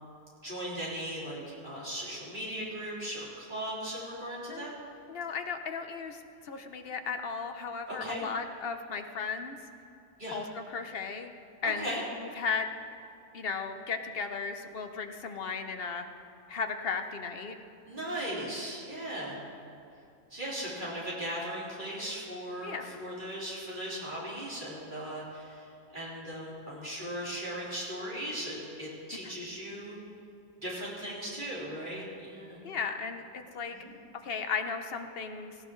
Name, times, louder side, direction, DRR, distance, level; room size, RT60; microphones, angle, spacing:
voice 1, 0.4-4.7 7.9-8.2 10.2-10.4 11.6-12.0 17.9-19.4 20.3-30.0 30.6-32.6 33.7-33.9, right 1 dB, 35° right, -8 dB, 4.2 m, -38 dB
voice 2, 5.1-9.6 10.3-11.3 11.6-12.7 13.3-16.1 16.5-17.5 22.6-23.0 29.2-29.3 32.6-33.8 34.2-35.6, left 5 dB, 50° left, 6 dB, 0.9 m, -35 dB
18.0 x 15.5 x 3.1 m, 2.5 s
omnidirectional pair, 1.5 m